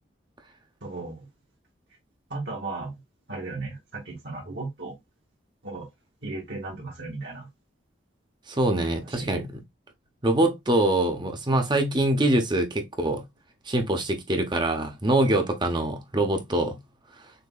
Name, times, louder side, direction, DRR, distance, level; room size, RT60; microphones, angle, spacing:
voice 1, 0.8-1.3 2.3-2.9 3.3-4.9 5.6-5.9 6.2-7.5 9.0-9.3, right 3 dB, 65° right, 2.0 m, -35 dB
voice 2, 8.5-9.6 10.2-13.2 13.7-16.8, right 1 dB, 25° right, 0.8 m, -24 dB
6.6 x 2.8 x 2.4 m
head